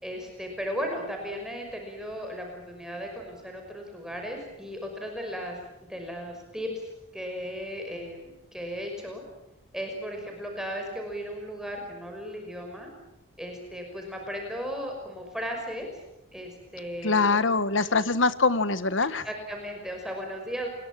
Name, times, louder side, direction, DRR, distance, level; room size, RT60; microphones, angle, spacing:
voice 1, 0.0-5.6 5.9-9.2 9.7-12.9 13.4-16.0 16.3-17.4 19.2-20.7, equal, 5° right, 2 dB, 5.7 m, -36 dB
voice 2, 17.0-19.3, left 3 dB, 60° left, 14 dB, 1.4 m, -23 dB
29.5 x 22.0 x 7.5 m, 0.87 s
head